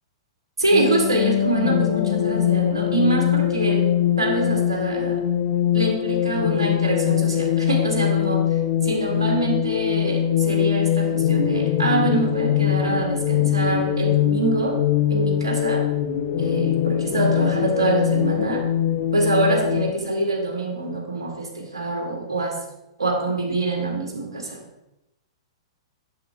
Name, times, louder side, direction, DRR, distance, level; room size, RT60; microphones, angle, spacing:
voice 1, 0.6-3.8 4.2-5.2 5.7-14.8 15.1-15.8 16.4-18.6 19.1-22.6 23.0-24.6, right 2 dB, 75° right, 0 dB, 2.0 m, -25 dB
sound 1, 0.7-19.9, left 10 dB, 50° left, 0.7 m, -22 dB
8.0 x 7.0 x 3.5 m, 0.90 s
figure-of-eight pair, 105°, 3 cm